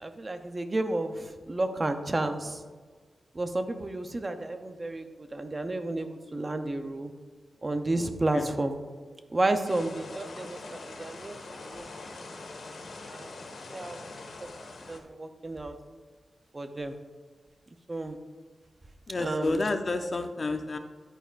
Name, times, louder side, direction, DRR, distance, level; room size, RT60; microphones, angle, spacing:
voice 1, 0.0-2.6 3.4-5.1 5.3-7.1 7.6-8.7 9.3-11.4 11.7-11.8 13.1-13.3 13.7-14.0 14.9-15.7 16.5-17.0 17.9-18.2 19.2-19.6, right 2 dB, 25° right, 7 dB, 0.5 m, -31 dB
sound 1, 9.6-15.0, left 3 dB, 75° left, 1.4 m, -43 dB
voice 2, 19.1-20.8, left 2 dB, 35° left, 7 dB, 0.5 m, -30 dB
10.0 x 9.0 x 2.4 m, 1.4 s
wide cardioid pair, 180°, 0 cm